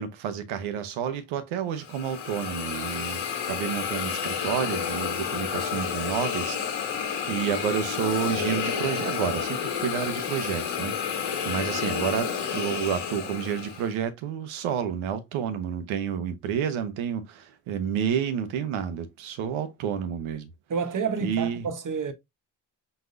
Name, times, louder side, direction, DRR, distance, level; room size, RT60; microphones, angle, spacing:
voice 1, 0.0-6.6 6.8-11.1 11.4-20.5 21.2-21.6, right 8 dB, 85° right, 0.9 m, -30 dB
Hiss, 1.8-13.9, left 7 dB, 70° left, 1.7 m, -30 dB
voice 2, 20.7-22.1, right 5 dB, 40° right, 1.1 m, -29 dB
4.4 x 4.0 x 2.6 m
supercardioid pair, 55°, 47 cm